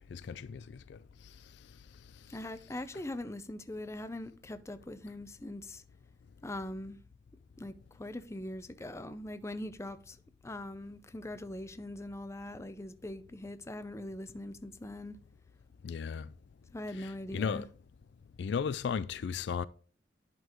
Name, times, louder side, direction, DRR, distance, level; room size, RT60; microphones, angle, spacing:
voice 1, 0.1-0.6 0.9-1.0 15.8-16.3 16.9-17.7 18.4-19.7, left 6 dB, 65° left, 0.3 m, -35 dB
voice 2, 2.3-5.8 6.4-7.0 7.6-10.2 10.4-15.2 16.7-17.6, left 1 dB, 15° left, 0.5 m, -42 dB
11.0 x 5.2 x 3.0 m
head